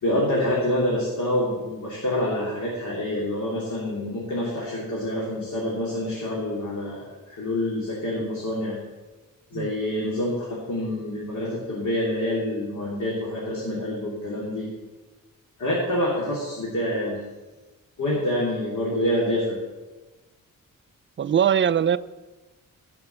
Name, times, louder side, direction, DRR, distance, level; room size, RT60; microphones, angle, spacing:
voice 1, 0.0-8.8 9.5-14.7 15.6-17.2 18.0-19.6, left 1 dB, 55° left, -5 dB, 3.1 m, -27 dB
voice 2, 21.2-22.0, right 8 dB, 35° right, 13 dB, 0.4 m, -21 dB
17.0 x 5.9 x 6.7 m, 1.2 s
wide cardioid pair, 155°, 34 cm